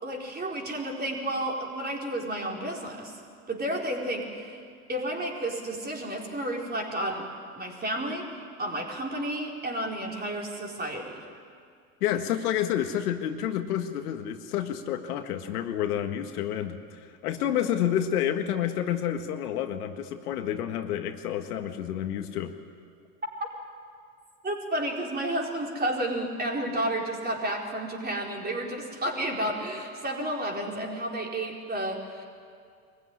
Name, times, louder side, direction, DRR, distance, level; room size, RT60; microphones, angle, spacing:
voice 1, 0.0-3.1 3.5-4.6 4.9-7.3 7.6-8.3 8.6-11.2 24.4-32.2, right 1 dB, 20° right, 0 dB, 4.4 m, -31 dB
voice 2, 12.0-22.5, left 10 dB, 80° left, 6 dB, 1.8 m, -29 dB
23.5 x 15.5 x 9.9 m, 2.2 s
hypercardioid pair, 100°, 45 cm